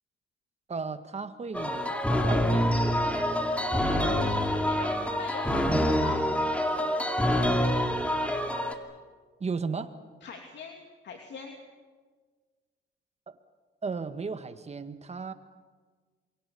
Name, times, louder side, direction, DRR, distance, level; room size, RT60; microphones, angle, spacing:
voice 1, 0.7-1.9 2.2-2.9 9.4-10.0 13.8-15.3, right 4 dB, 35° right, 9 dB, 1.8 m, -35 dB
sound 1, 1.5-8.7, equal, 5° left, 2.8 m, -26 dB
voice 2, 3.7-6.2 10.2-11.6, left 5 dB, 65° left, 3 dB, 2.7 m, -42 dB
28.0 x 23.5 x 7.1 m, 1.5 s
cardioid pair, 90°, 20 cm